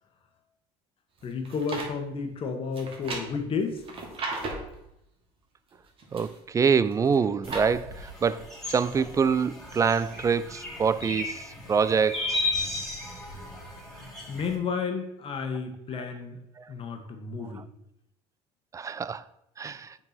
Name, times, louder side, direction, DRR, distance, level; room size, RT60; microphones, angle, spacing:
voice 1, 1.2-3.8 14.3-16.4 16.7-17.6, left 5 dB, 40° left, 1.3 m, -32 dB
sound 1, 1.2-1.9 2.7-4.7 5.7-6.4 6.9-7.7 8.2-8.3, right 3 dB, 40° right, 2.1 m, -36 dB
voice 2, 6.1-12.5 15.9-16.0 18.7-19.2 19.6-19.9, right 6 dB, 25° right, 0.4 m, -26 dB
sound 2, 7.4-14.6, left 2 dB, 5° left, 2.6 m, -35 dB
6.8 x 4.5 x 5.9 m
supercardioid pair, 105°, 14 cm